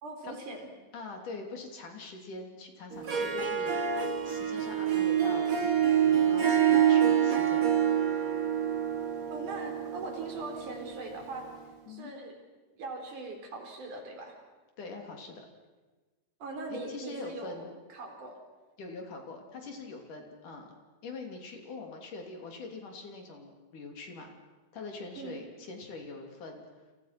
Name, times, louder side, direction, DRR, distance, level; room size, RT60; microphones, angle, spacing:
voice 1, 0.0-0.7 9.3-11.5 11.9-12.3 12.8-14.4 16.4-18.3 25.1-25.4, right 2 dB, 60° right, 3 dB, 5.3 m, -40 dB
voice 2, 0.9-3.8 4.2-7.7 11.9-12.1 14.8-15.5 16.7-17.7 18.8-20.7 21.0-24.3 24.7-26.7, left 3 dB, 60° left, 3 dB, 4.5 m, -43 dB
Harp, 2.9-11.5, right 9 dB, 85° right, 0.7 m, -27 dB
29.5 x 27.5 x 6.0 m, 1.2 s
omnidirectional pair, 4.2 m